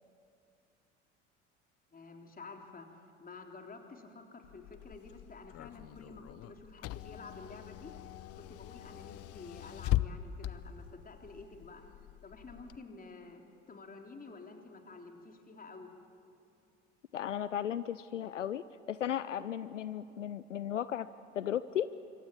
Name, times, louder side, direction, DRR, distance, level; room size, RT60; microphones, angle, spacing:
voice 1, 1.9-2.9 3.2-7.9 8.4-11.8 12.2-15.9, left 3 dB, 25° left, 3 dB, 3.7 m, -50 dB
Car / Engine, 4.4-12.8, left 14 dB, 40° left, 0.8 m, -40 dB
voice 2, 17.1-21.1 21.3-21.9, left 10 dB, 80° left, 16 dB, 0.6 m, -35 dB
26.0 x 23.5 x 8.8 m, 2.5 s
figure-of-eight pair, 60°, 36 cm